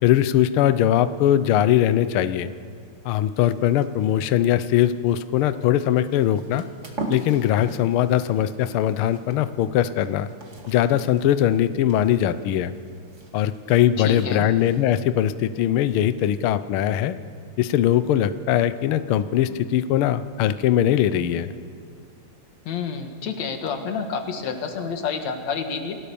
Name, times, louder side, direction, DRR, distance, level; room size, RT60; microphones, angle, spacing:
voice 1, 0.0-2.5 3.0-6.7 7.1-10.3 10.7-12.7 13.3-17.2 17.6-21.5, left 11 dB, 90° left, 13 dB, 1.2 m, -21 dB
sound 1, 3.3-14.8, right 2 dB, 25° right, 2.0 m, -42 dB
voice 2, 14.0-14.5 22.7-26.0, left 5 dB, 65° left, 5 dB, 2.9 m, -29 dB
28.5 x 17.0 x 7.0 m, 2.2 s
omnidirectional pair, 3.4 m